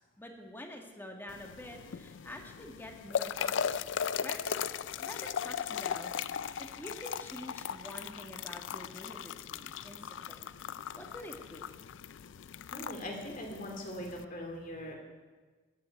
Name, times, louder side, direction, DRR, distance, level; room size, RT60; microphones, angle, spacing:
voice 1, 0.2-6.1 6.6-10.4 10.9-11.7, left 1 dB, 10° left, 2 dB, 1.6 m, -47 dB
sound 1, 1.3-14.3, left 8 dB, 70° left, 0.4 m, -38 dB
voice 2, 12.7-15.0, equal, 45° left, 1 dB, 2.9 m, -41 dB
13.5 x 7.8 x 8.5 m, 1.4 s
head